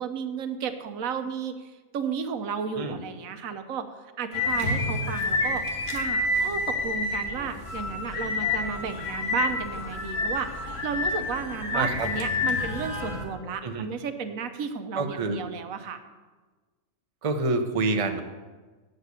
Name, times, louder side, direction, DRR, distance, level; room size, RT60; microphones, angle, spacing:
voice 1, 0.0-3.9 4.2-5.6 5.9-16.0, right 6 dB, 85° right, 9 dB, 1.2 m, -33 dB
sound 1, 4.3-13.2, left 2 dB, 50° left, 1.7 m, -29 dB
voice 2, 11.7-12.1 13.6-13.9 15.0-15.4 17.2-18.2, right 3 dB, 30° right, 5 dB, 0.7 m, -27 dB
8.3 x 6.4 x 8.2 m, 1.3 s
omnidirectional pair, 1.4 m